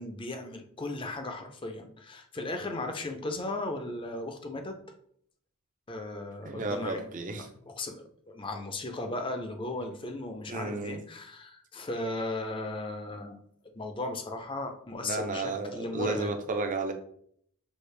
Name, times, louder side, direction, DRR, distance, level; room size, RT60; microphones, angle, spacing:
voice 1, 0.0-4.8 5.9-7.0 7.7-13.4 13.7-16.3, left 2 dB, 25° left, 5 dB, 0.5 m, -36 dB
voice 2, 6.4-7.5 10.5-11.0 15.0-16.9, right 3 dB, 40° right, 6 dB, 0.5 m, -32 dB
6.4 x 2.5 x 3.2 m, 0.66 s
head